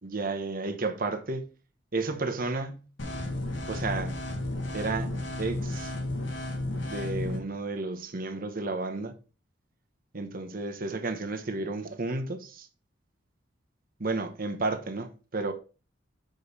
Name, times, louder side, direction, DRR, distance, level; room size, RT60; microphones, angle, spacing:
voice 1, 0.0-1.4 1.9-2.9 3.7-4.1 4.7-5.9 6.9-9.1 10.1-12.7 14.0-15.5, right 3 dB, 50° right, 1.1 m, -32 dB
sound 1, 3.0-7.4, left 1 dB, 75° left, 1.6 m, -33 dB
7.0 x 5.2 x 4.1 m
head